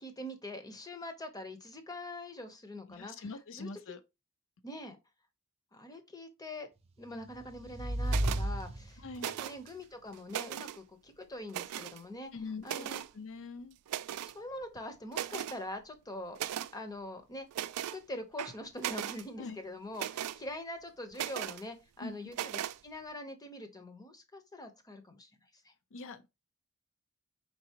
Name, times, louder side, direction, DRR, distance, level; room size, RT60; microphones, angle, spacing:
voice 1, 0.0-3.2 3.5-3.7 4.6-5.0 5.7-6.7 7.0-12.3 12.6-13.0 14.3-16.4 16.7-17.5 17.9-25.3 25.6-25.7, left 1 dB, 15° left, 0.8 m, -44 dB
voice 2, 2.9-4.0 9.0-9.3 12.3-13.8 19.4-19.6 22.0-22.2 25.9-26.3, left 4 dB, 60° left, 0.5 m, -43 dB
sound 1, 7.1-9.4, right 1 dB, 30° right, 0.6 m, -34 dB
sound 2, 8.1-8.4 9.2-9.7 10.1-10.8 11.5-12.0 12.6-13.1 13.9-14.4 14.8-14.9 15.1-15.6 16.3-16.7 17.5-18.0 18.4-19.2 19.9-20.4 21.1-21.6 22.3-22.8, right 11 dB, 85° right, 0.3 m, -37 dB
4.6 x 3.7 x 2.9 m
head